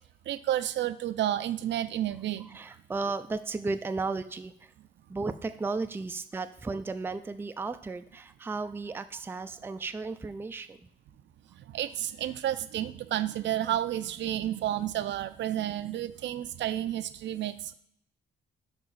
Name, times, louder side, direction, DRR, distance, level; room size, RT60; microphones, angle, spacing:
voice 1, 0.3-2.6 11.6-17.7, right 12 dB, 65° right, 12 dB, 0.5 m, -31 dB
voice 2, 2.4-4.7 5.1-10.8, right 3 dB, 10° right, 9 dB, 0.4 m, -34 dB
5.3 x 4.6 x 4.1 m, 0.69 s
cardioid pair, 90°, 20 cm